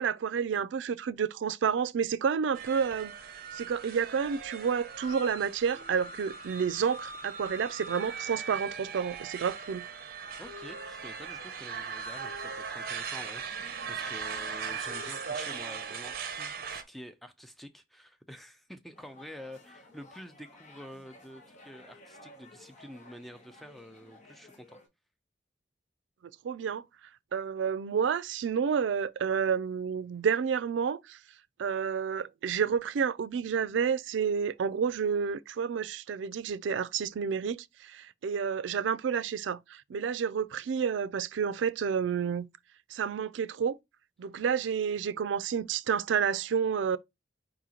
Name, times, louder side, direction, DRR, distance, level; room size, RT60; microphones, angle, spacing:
voice 1, 0.0-3.1 3.5-9.8 26.4-26.8 27.3-31.2 31.6-42.5 42.9-43.8 44.2-47.0, right 7 dB, 80° right, 0.3 m, -30 dB
sound 1, 2.5-16.8, right 5 dB, 50° right, 0.7 m, -39 dB
voice 2, 10.4-24.8, equal, ahead, 0.5 m, -48 dB
sound 2, 18.9-24.9, left 2 dB, 40° left, 1.1 m, -55 dB
4.9 x 2.8 x 3.8 m
head